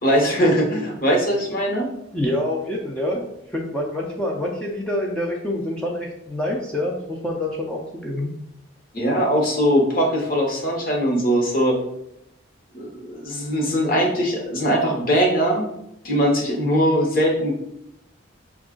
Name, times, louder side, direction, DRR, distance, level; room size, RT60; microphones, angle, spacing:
voice 1, 0.0-1.9 8.9-11.8 12.7-15.6 16.0-17.5, equal, 45° left, 0 dB, 0.9 m, -20 dB
voice 2, 2.1-3.2 3.5-8.3, left 1 dB, 5° left, -2 dB, 0.4 m, -26 dB
5.2 x 2.3 x 3.7 m, 0.80 s
head